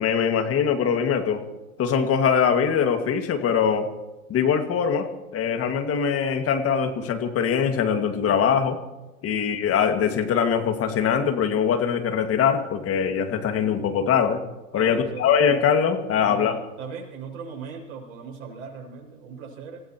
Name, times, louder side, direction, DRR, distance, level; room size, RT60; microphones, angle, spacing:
voice 1, 0.0-1.4 1.8-3.9 4.3-5.1 5.3-8.8 9.2-14.4 14.7-16.6, left 7 dB, 30° left, 6 dB, 2.2 m, -22 dB
voice 2, 14.7-15.3 16.2-19.8, right 6 dB, 55° right, -2 dB, 6.0 m, -39 dB
28.0 x 16.0 x 3.1 m, 1.1 s
hypercardioid pair, 95°, 43 cm